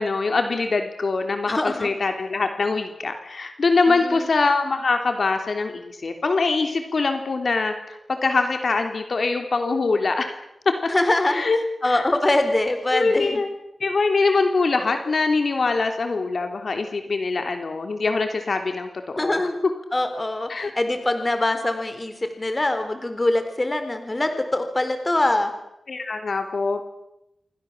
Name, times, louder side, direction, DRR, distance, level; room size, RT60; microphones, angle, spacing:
voice 1, 0.0-10.3 10.6-10.9 11.3-11.6 11.9-12.0 12.9-13.5 13.8-19.5 20.5-20.7 25.9-26.8, left 3 dB, 55° left, 6 dB, 3.4 m, -23 dB
voice 2, 1.5-1.9 3.9-4.3 10.9-11.4 11.8-13.4 19.2-19.5 19.9-25.5, left 2 dB, 25° left, 8 dB, 3.9 m, -23 dB
28.5 x 24.0 x 7.4 m, 0.85 s
wide cardioid pair, 115°, 0 cm